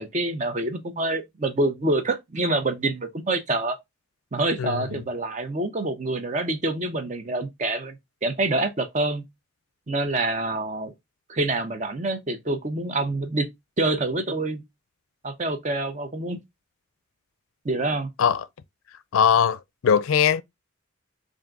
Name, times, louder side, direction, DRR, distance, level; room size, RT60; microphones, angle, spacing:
voice 1, 0.0-3.8 4.3-9.2 9.9-10.9 11.3-13.5 13.8-14.6 15.2-16.4 17.6-18.1, right 2 dB, 35° right, 0.6 m, -26 dB
voice 2, 4.6-5.0 18.2-18.4 19.1-20.4, left 7 dB, 90° left, 0.4 m, -21 dB
3.5 x 2.6 x 3.8 m
head